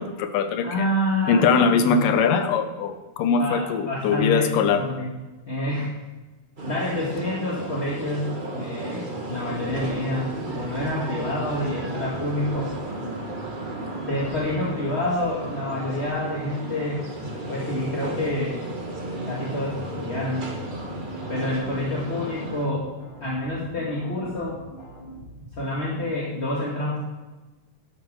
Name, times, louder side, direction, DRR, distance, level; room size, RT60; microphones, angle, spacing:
voice 1, 0.0-0.9 1.3-4.8, left 5 dB, 90° left, 8 dB, 2.6 m, -21 dB
voice 2, 0.6-2.1 3.4-5.1 5.5-5.9 6.6-12.7 14.0-17.0 17.5-18.6 19.2-20.5 21.3-22.9 23.2-24.6 25.5-27.0, left 1 dB, 25° left, -6 dB, 1.6 m, -28 dB
sound 1, 6.6-22.6, right 2 dB, 65° right, 0.4 m, -34 dB
sound 2, 9.2-26.2, equal, 75° left, 4.2 m, -42 dB
11.5 x 7.5 x 6.3 m, 1.2 s
omnidirectional pair, 3.7 m